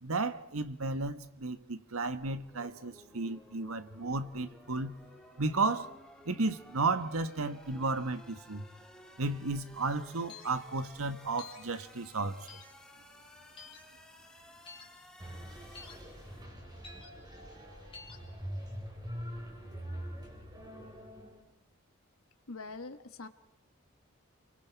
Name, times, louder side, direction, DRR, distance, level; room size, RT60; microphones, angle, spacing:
voice 1, 0.0-5.0 5.4-5.9 6.2-8.7 9.2-12.6, right 3 dB, 85° right, 1.4 m, -33 dB
sound 1, 2.3-16.4, left 1 dB, 5° left, 2.4 m, -56 dB
sound 2, 10.3-10.5 11.4-11.6 12.5-12.7 13.6-13.8 14.7-14.9 15.7-16.0 16.8-17.1 17.9-18.2, left 5 dB, 25° left, 3.8 m, -49 dB
sound 3, 15.2-21.4, equal, 20° right, 4.7 m, -44 dB
voice 2, 22.5-23.3, left 3 dB, 80° left, 1.4 m, -43 dB
30.0 x 23.5 x 4.7 m
head